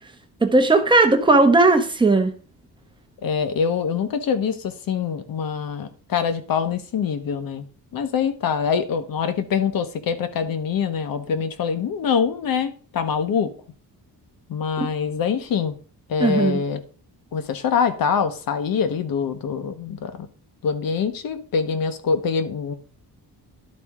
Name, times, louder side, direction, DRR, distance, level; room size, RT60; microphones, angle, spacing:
voice 1, 0.4-2.3 14.8-14.9 16.2-16.6, right 3 dB, 10° right, 6 dB, 0.8 m, -17 dB
voice 2, 3.2-7.6 7.9-13.5 14.5-15.7 16.1-16.8 17.3-20.3 20.6-22.7, left 6 dB, 60° left, 9 dB, 1.0 m, -24 dB
12.0 x 4.2 x 3.6 m, 0.40 s
wide cardioid pair, 170°, 39 cm